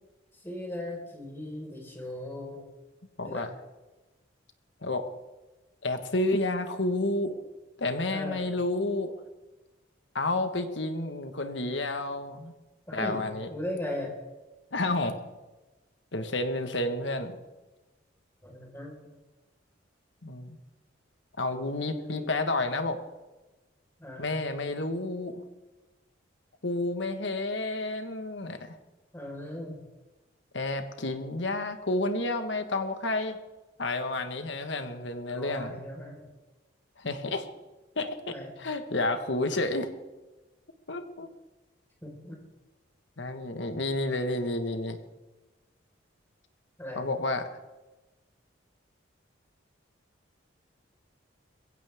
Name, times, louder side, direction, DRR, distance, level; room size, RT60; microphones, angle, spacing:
voice 1, 0.3-2.6 3.2-3.5 8.1-8.4 12.9-13.2 13.5-14.2 18.4-19.1 21.9-22.3 24.0-24.3 29.1-29.8 35.3-36.3 38.3-38.5 42.0-42.4 46.8-47.1, left 1 dB, 10° left, -2 dB, 4.8 m, -38 dB
voice 2, 5.8-7.4 7.8-9.1 10.1-12.5 12.9-13.5 14.7-15.2 16.1-17.4 20.2-20.6 21.4-23.0 24.2-25.4 26.6-28.8 30.5-33.4 33.8-35.7 37.0-37.5 37.9-39.9 40.9-41.3 43.2-45.0 46.9-47.5, left 2 dB, 70° left, 7 dB, 1.6 m, -30 dB
21.5 x 16.5 x 3.7 m, 1.1 s
head